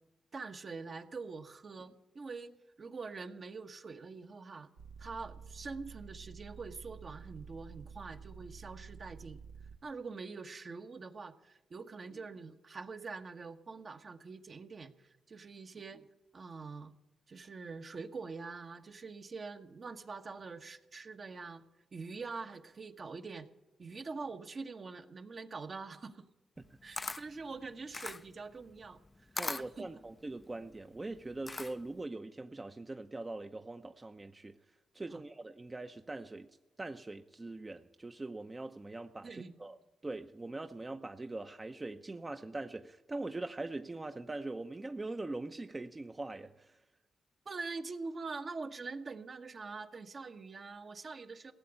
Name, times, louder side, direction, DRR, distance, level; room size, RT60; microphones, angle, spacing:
voice 1, 0.3-4.7 5.0-9.4 9.8-16.1 16.3-16.9 17.3-21.6 21.9-23.5 23.8-26.3 26.8-29.0 29.6-29.9 35.1-35.2 39.2-39.5 47.4-51.5, right 4 dB, 50° right, 7 dB, 1.2 m, -44 dB
sound 1, 4.8-9.8, right 5 dB, 90° right, 1.1 m, -50 dB
Camera, 26.6-32.0, left 3 dB, 30° left, 0.5 m, -42 dB
voice 2, 29.4-34.6 34.9-36.5 36.8-39.8 40.0-46.8, right 2 dB, 30° right, 7 dB, 0.7 m, -42 dB
17.0 x 7.7 x 9.8 m, 1.0 s
supercardioid pair, 50°, 0 cm